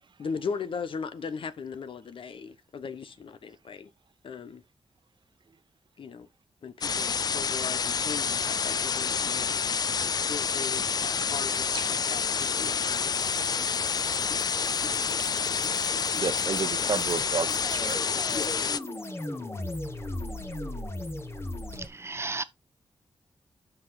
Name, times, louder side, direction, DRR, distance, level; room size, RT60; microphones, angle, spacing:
voice 1, 0.2-3.9 4.2-4.6 6.0-6.3 6.6-9.6 10.0-13.1 18.3-18.5, left 5 dB, 70° left, 1.0 m, -38 dB
sound 1, 6.8-18.8, left 6 dB, 45° left, 0.4 m, -28 dB
sound 2, 9.6-21.9, left 1 dB, 25° left, 1.5 m, -39 dB
voice 2, 16.1-18.0, right 6 dB, 60° right, 0.9 m, -32 dB
voice 3, 21.8-22.4, right 3 dB, 30° right, 0.8 m, -34 dB
8.5 x 6.1 x 3.9 m
cardioid pair, 85°, 9 cm